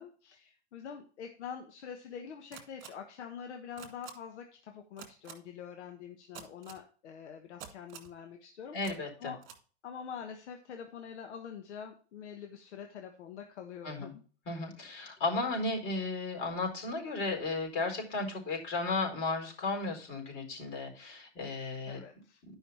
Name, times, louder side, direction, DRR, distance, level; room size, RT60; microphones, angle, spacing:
voice 1, 0.0-9.4 9.8-14.1 21.9-22.4, left 7 dB, 75° left, 5 dB, 1.3 m, -45 dB
sound 1, 2.5-2.9 3.8-4.1 5.0-5.3 6.3-6.8 7.6-8.1 8.8-8.9 9.4-9.6, right 9 dB, 35° right, 2.6 m, -47 dB
voice 2, 8.7-9.3 13.8-14.2 14.5-22.0, left 3 dB, 40° left, 2 dB, 4.5 m, -34 dB
10.5 x 5.7 x 4.3 m, 0.40 s
hypercardioid pair, 115°, 34 cm